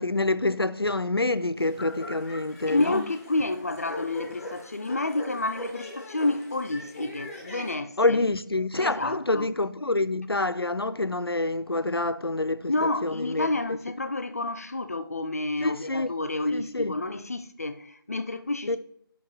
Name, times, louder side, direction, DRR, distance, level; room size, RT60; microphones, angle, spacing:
voice 1, 0.0-3.0 8.0-13.5 15.6-16.1 16.5-16.9 18.7-18.8, left 2 dB, 85° left, 0.6 m, -27 dB
sound 1, 1.6-7.7, left 1 dB, 5° left, 0.9 m, -41 dB
voice 2, 2.7-8.2 8.8-9.5 12.7-18.8, left 2 dB, 40° left, 0.6 m, -29 dB
11.5 x 5.8 x 2.9 m
figure-of-eight pair, 160°, 12 cm